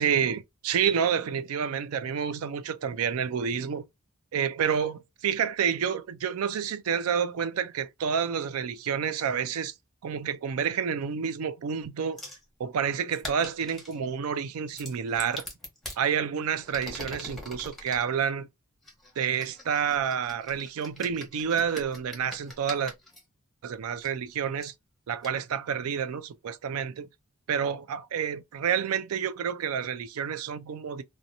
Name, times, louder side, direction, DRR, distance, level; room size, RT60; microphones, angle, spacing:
voice 1, 0.0-3.8 4.3-9.7 10.0-12.2 12.6-15.5 16.0-18.5 19.2-22.9 23.6-24.7 25.1-27.1 27.5-31.0, right 7 dB, 90° right, 0.4 m, -29 dB
sound 1, 12.2-12.4 13.1-14.0 14.7-16.0 16.6-18.0 18.8-23.2 24.0-24.1 24.6-24.7 25.2-25.3, left 1 dB, ahead, 0.9 m, -42 dB
2.8 x 2.2 x 2.5 m
head